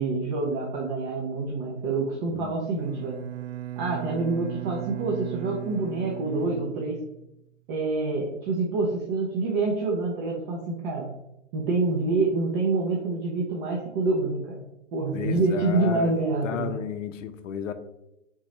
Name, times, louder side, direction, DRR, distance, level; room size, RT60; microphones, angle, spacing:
voice 1, 0.0-3.2 3.8-7.0 7.7-11.1 11.5-14.6 14.9-16.8, right 3 dB, 40° right, -2 dB, 0.9 m, -27 dB
voice 2, 2.2-2.6 15.1-16.1 16.4-17.7, left 9 dB, 70° left, 10 dB, 0.6 m, -33 dB
Bowed string instrument, 2.8-7.5, right 13 dB, 80° right, 0.5 m, -37 dB
4.1 x 3.7 x 3.1 m, 0.86 s
hypercardioid pair, 125°, 39 cm